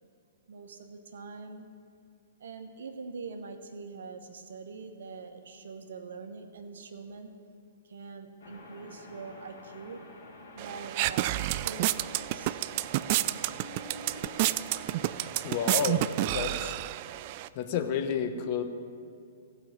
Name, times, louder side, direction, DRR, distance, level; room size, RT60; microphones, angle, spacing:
voice 1, 0.5-1.7 2.4-7.3 7.8-10.0 10.5-12.6, right 4 dB, 75° right, 6 dB, 1.1 m, -44 dB
sound 1, 8.4-16.2, left 2 dB, 70° left, 2.4 m, -48 dB
sound 2, 10.6-17.5, right 15 dB, 45° right, 0.3 m, -30 dB
voice 2, 15.4-16.7 17.5-18.6, left 7 dB, 45° left, 7 dB, 1.0 m, -31 dB
15.0 x 5.5 x 7.5 m, 2.4 s
hypercardioid pair, 125°, 0 cm